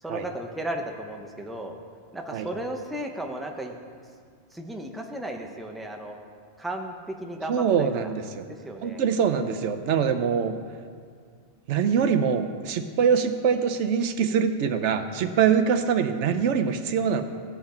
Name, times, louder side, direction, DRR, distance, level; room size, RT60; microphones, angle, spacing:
voice 1, 0.0-1.7 2.1-3.8 4.5-6.2 6.6-8.1 8.5-9.0, right 1 dB, ahead, 2 dB, 0.6 m, -35 dB
voice 2, 7.5-8.4 8.8-10.5 11.7-17.2, right 7 dB, 85° right, 7 dB, 1.0 m, -24 dB
16.0 x 5.8 x 4.4 m, 2.1 s
omnidirectional pair, 1.2 m